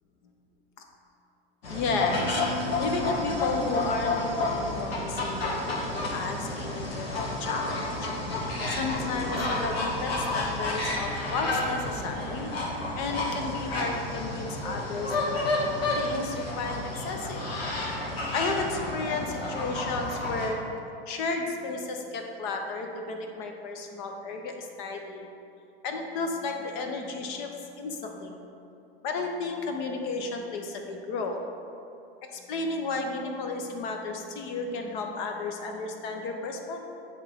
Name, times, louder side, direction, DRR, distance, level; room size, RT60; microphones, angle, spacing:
sound 1, 1.6-20.5, left 2 dB, 70° left, 1.5 m, -30 dB
voice 1, 1.7-8.4 8.7-12.5 12.9-17.5 18.3-20.6 21.1-25.3 25.8-28.4 29.0-31.5 32.3-36.8, left 3 dB, 50° left, 3 dB, 0.9 m, -33 dB
8.5 x 3.1 x 5.1 m, 2.8 s
hypercardioid pair, 90°, 31 cm